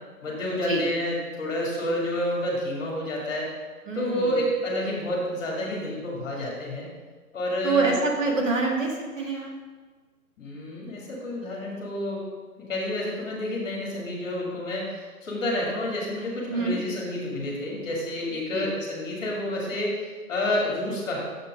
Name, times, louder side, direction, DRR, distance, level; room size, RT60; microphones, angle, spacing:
voice 1, 0.2-3.5 3.9-6.9 7.3-7.9 10.4-12.2 12.6-21.2, left 1 dB, 20° left, -3 dB, 1.9 m, -29 dB
voice 2, 3.9-4.4 7.6-9.5 16.5-16.8 18.5-18.7, right 3 dB, 55° right, -1 dB, 2.0 m, -26 dB
6.6 x 6.4 x 5.1 m, 1.4 s
figure-of-eight pair, 145°, 45 cm